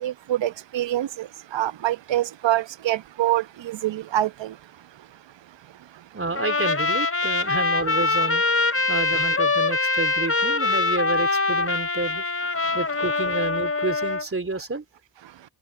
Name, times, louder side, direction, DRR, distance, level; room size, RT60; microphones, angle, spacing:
voice 1, 0.0-4.6 5.0-5.1 5.9-6.0 12.6-12.7 15.2-15.3, right 13 dB, 60° right, 1.2 m, -26 dB
voice 2, 6.1-8.4 8.9-12.2 12.7-14.8, right 3 dB, 25° right, 3.5 m, -29 dB
Trumpet, 6.4-14.3, left 3 dB, 25° left, 4.1 m, -23 dB
hypercardioid pair, 40°, 50 cm